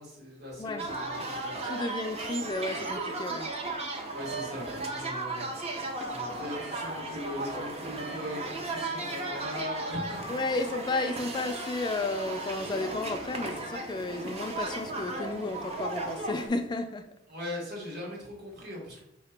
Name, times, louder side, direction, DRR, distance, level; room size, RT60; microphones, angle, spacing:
voice 1, 0.0-1.5 4.1-10.2 17.3-19.0, left 1 dB, 55° right, -4 dB, 1.5 m, -40 dB
sound 1, 0.8-16.5, right 2 dB, 35° right, 0.5 m, -35 dB
voice 2, 1.6-3.5 10.3-17.1, left 2 dB, 25° left, 8 dB, 0.3 m, -33 dB
4.8 x 2.8 x 3.3 m, 0.83 s
head